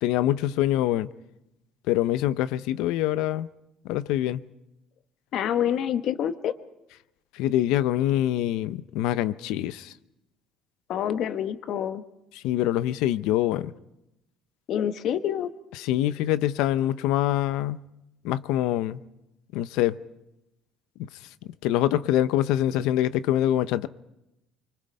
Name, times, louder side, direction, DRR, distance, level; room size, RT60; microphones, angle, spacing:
voice 1, 0.0-1.1 1.9-3.5 3.8-4.4 7.3-9.9 12.4-13.7 15.8-17.8 18.2-19.0 19.5-20.0 21.0-21.1 21.6-23.9, left 13 dB, 85° left, 0.7 m, -24 dB
voice 2, 5.3-6.6 10.9-12.0 14.7-15.5, left 9 dB, 55° left, 1.2 m, -27 dB
25.0 x 25.0 x 5.4 m
cardioid pair, 140°, 0 cm